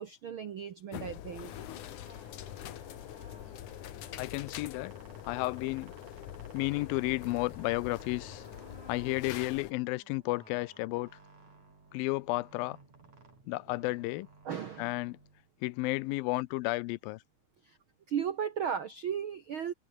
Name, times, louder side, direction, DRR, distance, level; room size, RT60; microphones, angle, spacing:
voice 1, 0.0-1.5 14.4-14.9 17.6-17.8 18.1-19.7, right 8 dB, 70° right, 1.2 m, -35 dB
sound 1, 0.9-9.7, left 12 dB, 65° left, 2.7 m, -44 dB
sound 2, 1.3-15.8, right 3 dB, 50° right, 8.0 m, -57 dB
voice 2, 4.2-4.9 5.3-6.0 6.5-8.5 8.9-11.1 11.9-12.8 13.5-14.3 14.8-15.2 15.6-17.2, left 21 dB, 85° left, 2.4 m, -32 dB
omnidirectional pair, 4.1 m